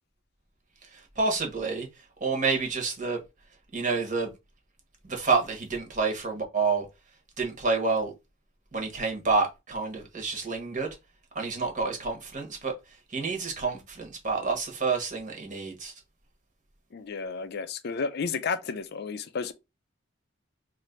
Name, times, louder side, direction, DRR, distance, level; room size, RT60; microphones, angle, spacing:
voice 1, 0.9-1.9 2.2-3.2 3.7-4.3 5.0-6.8 7.4-8.1 8.7-10.9 11.3-12.7 13.1-15.9, right 4 dB, 40° right, 1.1 m, -28 dB
voice 2, 16.9-19.5, left 5 dB, 55° left, 0.4 m, -32 dB
2.9 x 2.5 x 4.3 m
head